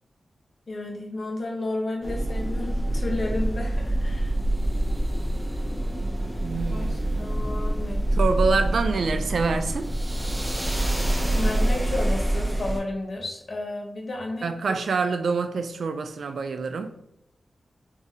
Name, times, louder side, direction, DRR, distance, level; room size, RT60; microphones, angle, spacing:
voice 1, 0.7-4.4 6.6-6.9 7.2-8.0 11.3-14.5, left 2 dB, 55° left, 0.8 m, -32 dB
sound 1, 2.0-12.8, right 1 dB, 20° right, 0.7 m, -26 dB
voice 2, 6.4-7.5 8.1-9.9 14.4-16.9, right 4 dB, 80° right, 0.3 m, -26 dB
3.9 x 2.7 x 2.4 m
wide cardioid pair, 70°, 0 cm